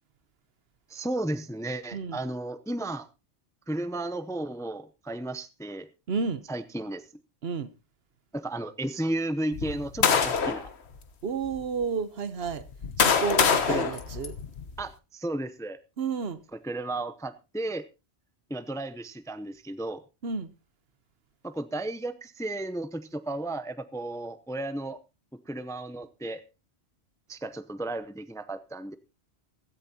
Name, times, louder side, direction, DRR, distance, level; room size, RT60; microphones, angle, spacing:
voice 1, 0.9-3.1 3.7-5.9 6.5-7.1 8.3-10.7 13.6-14.0 14.8-15.8 16.5-17.8 18.5-20.0 21.4-25.0 25.3-26.4 27.3-29.0, right 1 dB, 5° left, 0.5 m, -34 dB
voice 2, 6.1-6.4 7.4-7.7 11.2-12.6 13.0-14.4 16.0-16.4 20.2-20.5, right 5 dB, 65° right, 1.1 m, -31 dB
sound 1, 9.5-10.7 11.4-11.6 12.5-14.8, left 6 dB, 75° left, 1.4 m, -25 dB
16.0 x 14.0 x 2.8 m
omnidirectional pair, 1.1 m